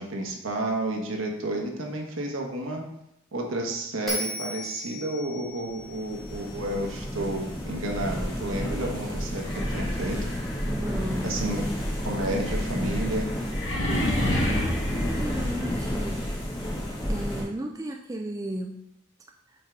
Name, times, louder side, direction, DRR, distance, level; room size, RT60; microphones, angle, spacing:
voice 1, 0.0-2.9 3.3-10.3 11.2-11.6 12.0-13.3, right 1 dB, 75° right, 1 dB, 1.1 m, -31 dB
Bell, 4.1-7.3, equal, ahead, 1.1 m, -36 dB
sound 1, 5.7-17.4, equal, 25° left, 1.3 m, -31 dB
sound 2, 9.4-16.3, left 1 dB, 60° left, 1.1 m, -31 dB
voice 2, 10.7-11.4 13.8-16.3 17.1-18.8, right 1 dB, 15° right, 2 dB, 0.3 m, -34 dB
5.3 x 3.9 x 4.6 m, 0.79 s
head